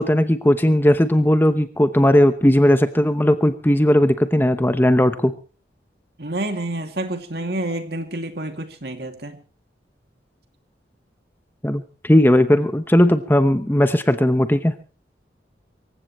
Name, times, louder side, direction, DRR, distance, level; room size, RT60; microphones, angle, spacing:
voice 1, 0.0-5.3 11.6-14.7, left 1 dB, 10° left, 10 dB, 0.9 m, -17 dB
voice 2, 6.2-9.4 12.6-12.7, right 1 dB, 60° right, 6 dB, 2.5 m, -28 dB
25.5 x 15.5 x 3.1 m, 0.34 s
head